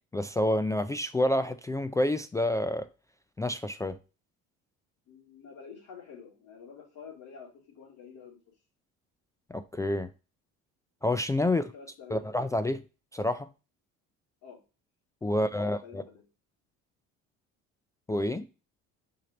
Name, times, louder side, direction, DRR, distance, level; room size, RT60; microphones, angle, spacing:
voice 1, 0.1-2.9 3.4-4.0 9.5-10.1 11.0-11.6 12.1-12.8 13.1-13.5 15.2-16.0 18.1-18.5, left 1 dB, 10° left, 0.3 m, -28 dB
voice 2, 5.1-8.4 11.4-12.3 14.4-14.6 15.3-16.2, left 6 dB, 75° left, 3.2 m, -49 dB
6.2 x 4.4 x 3.9 m
cardioid pair, 110°, 31 cm